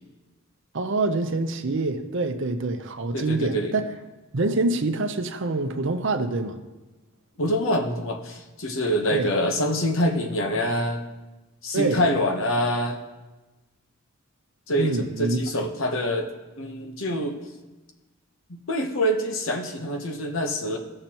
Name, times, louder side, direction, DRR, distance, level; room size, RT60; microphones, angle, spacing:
voice 1, 0.7-3.9 4.3-6.6 9.1-9.3 11.7-12.0 14.8-15.4, right 2 dB, 60° right, 7 dB, 0.7 m, -26 dB
voice 2, 3.1-3.7 7.4-11.0 11.6-13.0 14.7-16.3 16.6-17.4 18.5-20.8, equal, 65° left, 4 dB, 1.0 m, -25 dB
16.5 x 6.6 x 2.9 m, 1.1 s
head